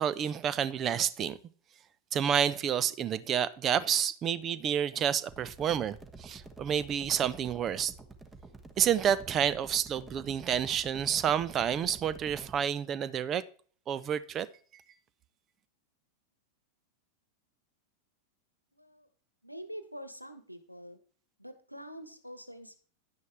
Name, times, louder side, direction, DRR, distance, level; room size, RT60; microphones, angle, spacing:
voice 1, 0.0-1.4 2.1-7.9 8.8-13.4 13.9-14.5, right 8 dB, 30° right, 0.6 m, -29 dB
sound 1, 5.3-12.6, right 3 dB, 15° right, 1.3 m, -49 dB
voice 2, 18.7-19.1 19.4-21.0 21.4-22.8, equal, 90° left, 1.3 m, -45 dB
10.5 x 9.4 x 3.4 m
figure-of-eight pair, 90°, 0 cm